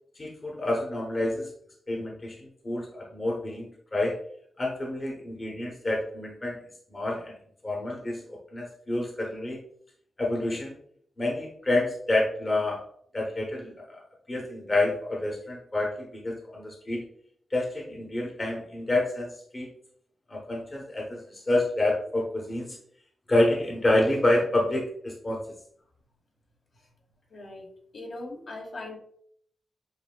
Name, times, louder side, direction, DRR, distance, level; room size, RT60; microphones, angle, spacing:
voice 1, 0.1-1.5 1.9-4.1 4.6-6.6 6.9-7.3 7.6-9.6 10.2-10.7 11.2-12.8 13.1-14.0 14.3-17.0 17.5-19.7 20.3-22.8 23.3-25.4, left 1 dB, 30° left, -1 dB, 0.9 m, -28 dB
voice 2, 27.3-27.7 27.9-29.0, left 2 dB, 65° left, 0 dB, 1.3 m, -39 dB
6.6 x 2.7 x 2.3 m, 0.63 s
cardioid pair, 85°, 0 cm